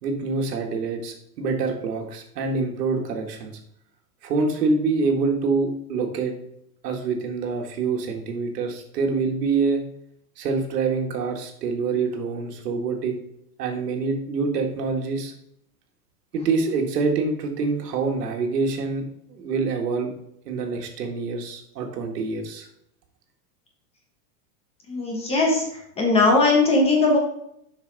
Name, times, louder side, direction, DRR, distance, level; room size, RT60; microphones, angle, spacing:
voice 1, 0.0-3.6 4.2-6.3 6.8-9.8 10.4-13.1 13.6-15.3 16.3-20.1 20.5-22.7, right 4 dB, 85° right, 3 dB, 1.8 m, -26 dB
voice 2, 24.9-25.6 26.0-27.2, left 3 dB, 15° left, -1 dB, 1.2 m, -19 dB
7.2 x 5.8 x 4.0 m, 0.74 s
supercardioid pair, 170°, 47 cm